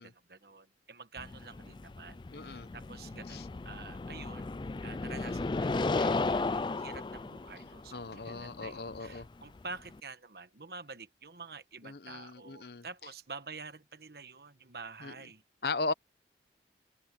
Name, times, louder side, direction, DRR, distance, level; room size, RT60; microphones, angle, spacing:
voice 1, 0.0-4.5 4.8-15.4, right 4 dB, 60° right, 1.3 m, -48 dB
sound 1, 1.2-10.0, left 3 dB, 25° left, 0.3 m, -35 dB
voice 2, 2.3-2.7 3.3-3.4 7.9-9.3 11.8-12.8 15.0-15.1 15.6-15.9, left 3 dB, 65° left, 0.9 m, -37 dB
open air
head